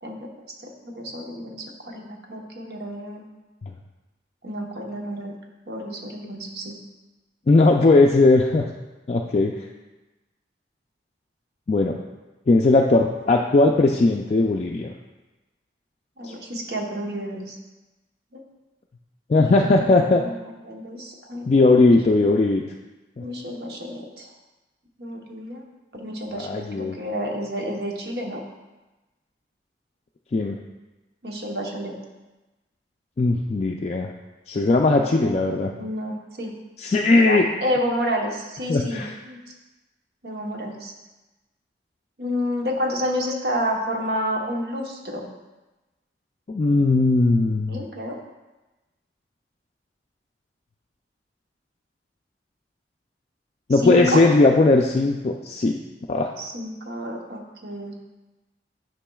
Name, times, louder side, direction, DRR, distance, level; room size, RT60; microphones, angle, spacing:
voice 1, 0.0-0.3 0.6-3.3 4.4-5.3 5.7-6.8 16.2-17.6 18.3-18.4 19.4-21.9 23.2-24.3 25.0-25.6 25.9-28.4 31.2-32.0 34.9-35.3 35.8-36.5 37.1-39.4 40.2-40.9 42.2-45.3 47.7-48.2 53.8-54.2 56.4-58.0, equal, 65° right, 1 dB, 1.0 m, -30 dB
voice 2, 7.5-8.7 9.1-9.5 11.7-12.0 12.5-14.9 16.2-16.3 19.3-20.2 21.5-22.6 23.2-23.3 26.3-26.9 30.3-30.6 33.2-34.1 34.5-35.7 36.8-37.4 38.7-39.1 46.5-47.8 53.7-55.8 56.1-56.3, left 2 dB, 40° left, 0 dB, 0.3 m, -18 dB
10.0 x 5.7 x 2.3 m, 1.1 s
head